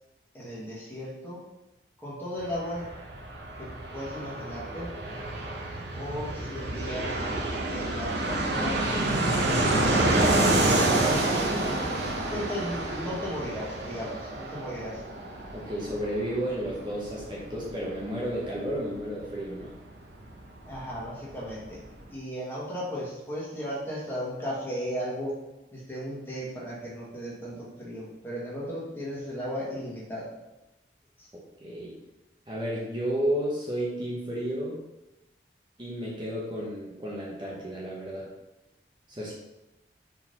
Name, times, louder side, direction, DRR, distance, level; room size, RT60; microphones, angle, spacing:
voice 1, 0.3-1.4 2.0-2.9 3.6-4.9 5.9-7.3 7.7-8.9 9.6-11.2 12.3-15.0 20.6-21.8 22.1-25.4 25.7-30.3 31.2-31.3, equal, 10° left, -6 dB, 1.7 m, -36 dB
Fixed-wing aircraft airplane, 2.4-20.8 21.0-21.1 21.3-22.0, right 2 dB, 80° right, 0.9 m, -28 dB
voice 2, 15.5-19.7 31.3-31.9 32.5-34.8 35.8-38.3 39.1-39.3, equal, 25° right, -4 dB, 1.0 m, -32 dB
4.7 x 4.0 x 5.4 m, 0.96 s
head